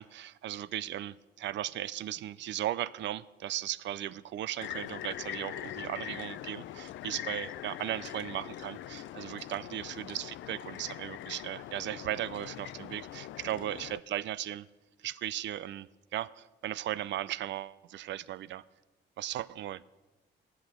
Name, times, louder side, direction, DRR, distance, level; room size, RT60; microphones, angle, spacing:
voice 1, 0.0-14.7 15.0-18.6 19.2-19.8, right 13 dB, 65° right, 0.4 m, -37 dB
sound 1, 4.6-14.0, left 13 dB, 75° left, 0.4 m, -42 dB
8.6 x 7.7 x 9.1 m
cardioid pair, 90°, 20 cm